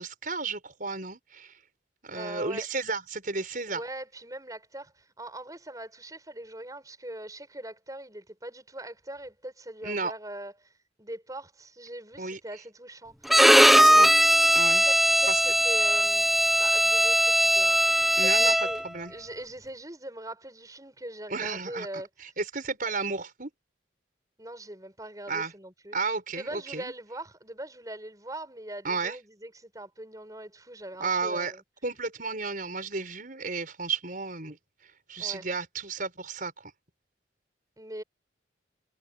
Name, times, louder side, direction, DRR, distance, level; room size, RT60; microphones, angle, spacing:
voice 1, 0.0-1.6 2.0-3.8 9.8-10.1 12.2-12.4 13.5-14.1 14.5-14.9 15.3-15.4 18.2-18.5 18.8-19.1 21.3-22.0 22.4-23.5 25.3-25.5 25.9-26.9 28.8-29.2 31.0-31.5 31.8-34.6 35.1-36.7, right 4 dB, 45° right, 6.3 m, -32 dB
voice 2, 2.1-2.7 3.7-10.7 11.0-14.2 14.8-16.3 16.6-22.1 24.4-26.0 26.3-31.6 32.9-33.0 35.2-35.5 37.8-38.0, right 1 dB, 20° right, 6.4 m, -41 dB
Bowed string instrument, 13.3-18.9, equal, ahead, 1.1 m, -20 dB
head